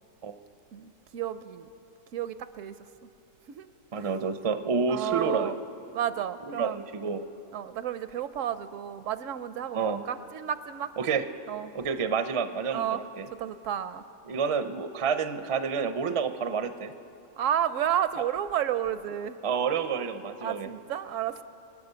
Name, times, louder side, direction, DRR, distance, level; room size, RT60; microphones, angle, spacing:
voice 1, 0.7-1.7 2.1-2.7 3.5-3.7 4.0-4.1 4.9-5.6 5.9-6.8 7.5-10.9 11.5-11.7 12.7-13.0 13.3-14.0 17.4-19.3 20.4-21.4, right 10 dB, 75° right, 13 dB, 0.9 m, -31 dB
voice 2, 3.9-5.6 6.4-7.2 9.7-10.0 11.0-11.3 11.7-13.3 14.3-16.9 19.4-20.7, right 5 dB, 40° right, 9 dB, 0.4 m, -29 dB
24.5 x 8.6 x 6.8 m, 2.8 s
omnidirectional pair, 1.4 m